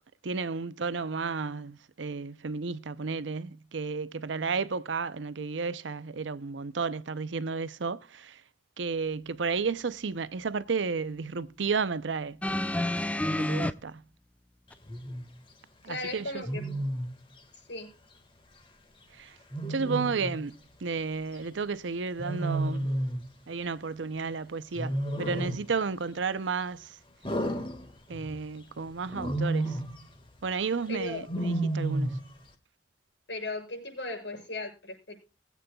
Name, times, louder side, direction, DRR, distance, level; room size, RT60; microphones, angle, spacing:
voice 1, 0.2-8.4 8.8-12.4 13.2-14.0 15.8-16.4 19.1-19.3 19.7-22.9 23.5-27.0 28.1-29.8 30.4-32.3, right 5 dB, 90° right, 0.6 m, -32 dB
sound 1, 12.4-13.7 14.7-14.8, left 1 dB, 5° left, 0.4 m, -28 dB
Wild animals, 14.9-15.2 16.5-17.2 19.5-20.4 22.2-23.3 24.8-25.7 27.2-28.4 29.1-30.0 31.3-32.3, right 1 dB, 30° left, 1.7 m, -31 dB
voice 2, 15.8-16.6 17.7-17.9 30.9-31.3 33.3-35.2, left 2 dB, 75° left, 6.3 m, -36 dB
20.5 x 8.4 x 2.3 m
head